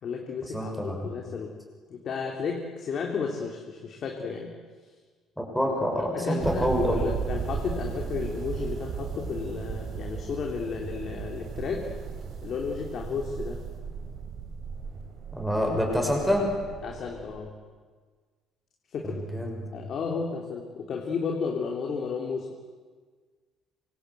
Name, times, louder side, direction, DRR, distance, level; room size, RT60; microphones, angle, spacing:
voice 1, 0.0-1.6 1.9-4.5 6.1-11.9 12.4-13.6 16.8-17.6 18.9-19.2 19.7-22.5, left 5 dB, 40° left, 1 dB, 3.0 m, -33 dB
voice 2, 0.5-1.1 5.4-7.0 15.3-16.5 19.0-19.7, equal, ahead, 0 dB, 6.2 m, -27 dB
sound 1, 6.4-17.4, right 6 dB, 45° right, 4.3 m, -36 dB
26.5 x 25.0 x 8.3 m, 1.5 s
cardioid pair, 165°, 0 cm